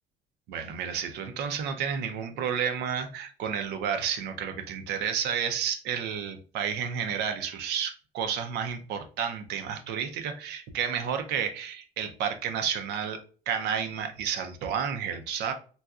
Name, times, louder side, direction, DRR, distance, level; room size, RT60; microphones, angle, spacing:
voice 1, 0.5-13.2 13.5-15.5, right 7 dB, 85° right, 0.6 m, -31 dB
4.0 x 2.3 x 2.3 m
cardioid pair, 110°, 17 cm